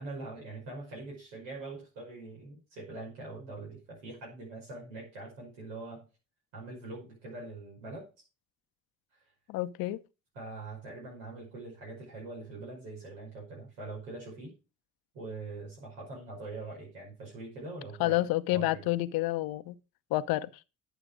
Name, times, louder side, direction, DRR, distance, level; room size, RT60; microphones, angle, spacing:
voice 1, 0.0-6.1 6.5-8.1 9.1-9.3 10.3-14.5 15.1-18.9, right 2 dB, 85° right, 5.6 m, -43 dB
voice 2, 9.5-10.0 18.0-19.7 20.1-20.5, left 16 dB, 75° left, 0.8 m, -29 dB
11.0 x 6.9 x 5.1 m
hypercardioid pair, 55°, 36 cm